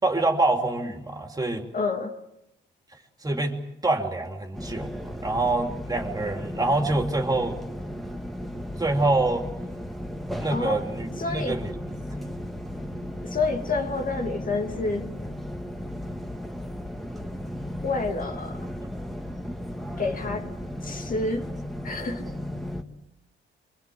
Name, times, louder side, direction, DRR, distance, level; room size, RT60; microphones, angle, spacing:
voice 1, 0.0-1.7 3.2-3.6 3.8-7.6 8.8-9.4 10.4-11.7 12.1-12.3, right 2 dB, 20° right, 4 dB, 3.3 m, -26 dB
voice 2, 1.7-2.2 10.5-10.8 11.2-11.6 13.2-15.1 17.8-18.7 20.0-20.5 20.8-21.5 21.8-22.3, left 3 dB, 45° left, 4 dB, 2.4 m, -28 dB
sound 1, 4.5-22.8, equal, ahead, 2.1 m, -35 dB
24.5 x 24.0 x 7.9 m, 0.84 s
cardioid pair, 90°, 20 cm